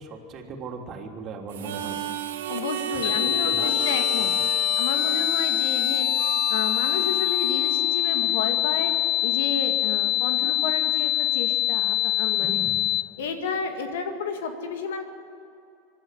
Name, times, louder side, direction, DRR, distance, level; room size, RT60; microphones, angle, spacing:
voice 1, 0.0-2.0 2.9-3.8 5.0-5.2 12.4-12.8, right 4 dB, 40° right, 2 dB, 3.2 m, -38 dB
Harmonica, 1.5-8.4, right 9 dB, 75° right, 1.9 m, -34 dB
voice 2, 2.5-4.3 4.8-8.9 9.2-12.6 13.2-15.0, left 5 dB, 70° left, 6 dB, 2.1 m, -31 dB
sound 1, 3.0-13.0, left 14 dB, 50° left, 0.7 m, -24 dB
25.5 x 11.5 x 9.9 m, 2.6 s
hypercardioid pair, 85°, 0 cm